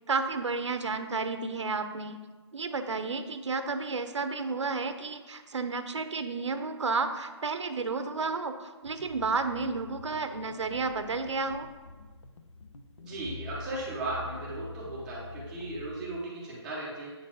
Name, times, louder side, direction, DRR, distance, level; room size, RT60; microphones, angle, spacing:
voice 1, 0.1-2.2 2.5-11.7, right 4 dB, 80° right, 9 dB, 0.8 m, -32 dB
sound 1, 8.8-16.0, left 3 dB, 80° left, 0.9 m, -46 dB
voice 2, 13.0-17.1, right 2 dB, 5° right, -7 dB, 0.7 m, -36 dB
8.2 x 4.0 x 6.0 m, 1.3 s
hypercardioid pair, 175°, 15 cm